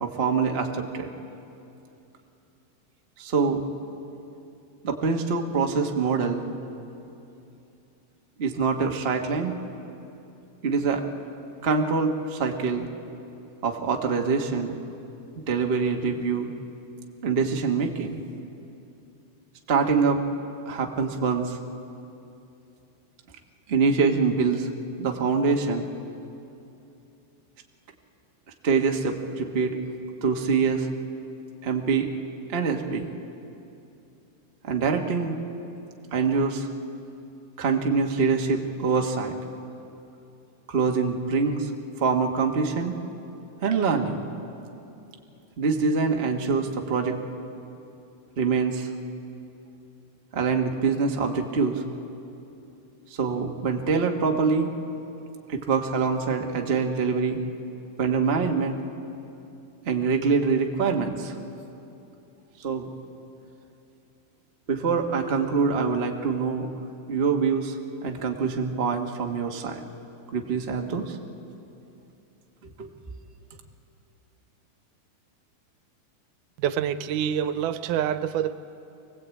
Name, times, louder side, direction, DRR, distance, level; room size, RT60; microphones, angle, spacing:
voice 1, 0.0-1.1 3.2-3.6 4.8-6.4 8.4-9.5 10.6-11.0 11.6-12.9 13.6-14.8 15.5-16.5 17.2-18.2 19.7-20.2 20.7-21.6 23.7-24.7 25.0-25.8 28.6-29.8 30.2-30.9 31.6-32.1 32.5-33.1 34.6-35.4 36.1-36.7 37.6-39.3 40.7-41.7 42.0-42.9 43.6-44.2 45.6-47.2 48.4-48.9 50.3-51.8 53.2-54.7 55.5-57.4 58.0-58.8 59.8-61.3 62.6-62.9 64.7-66.7 67.1-69.8 70.3-71.1 72.8-72.9, right 5 dB, 75° right, 2 dB, 0.5 m, -24 dB
voice 2, 76.6-78.5, right 9 dB, 90° right, 12 dB, 2.3 m, -26 dB
25.0 x 18.0 x 8.4 m, 2.8 s
omnidirectional pair, 3.5 m